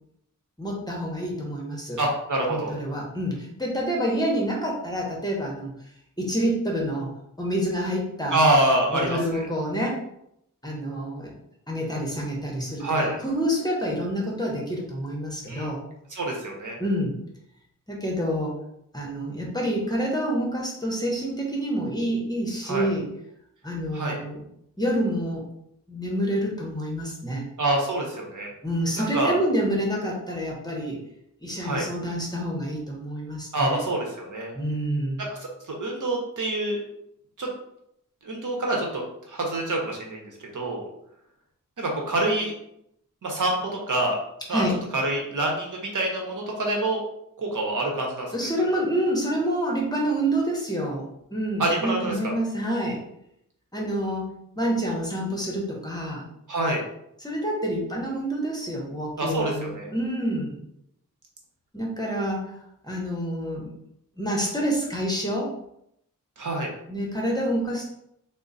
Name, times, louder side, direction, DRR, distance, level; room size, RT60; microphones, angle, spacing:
voice 1, 0.6-2.0 2.5-5.7 6.2-7.1 7.4-8.4 8.9-10.0 10.6-11.3 11.7-15.8 16.8-17.2 17.9-18.5 18.9-23.1 23.6-24.4 24.8-25.5 25.9-27.4 28.6-31.0 31.4-33.8 34.5-35.2 44.5-44.7 48.3-53.0 53.7-54.3 54.6-56.2 57.2-60.6 61.7-62.6 62.8-63.7 64.2-65.5 66.9-67.9, equal, 10° left, -3 dB, 0.9 m, -27 dB
voice 2, 2.0-2.7 8.3-9.4 12.8-13.2 15.5-15.7 16.1-16.8 22.7-22.8 23.9-24.2 27.6-28.5 29.0-29.4 31.6-31.8 33.5-34.5 35.7-36.8 37.4-37.5 38.2-40.2 40.5-40.8 41.8-42.5 43.2-44.2 44.5-44.6 44.9-47.0 47.4-48.3 51.6-52.1 56.5-56.8 59.2-59.9 66.4-66.7, right 1 dB, 65° right, 0 dB, 0.9 m, -26 dB
3.7 x 2.1 x 3.9 m, 0.77 s
wide cardioid pair, 120°, 33 cm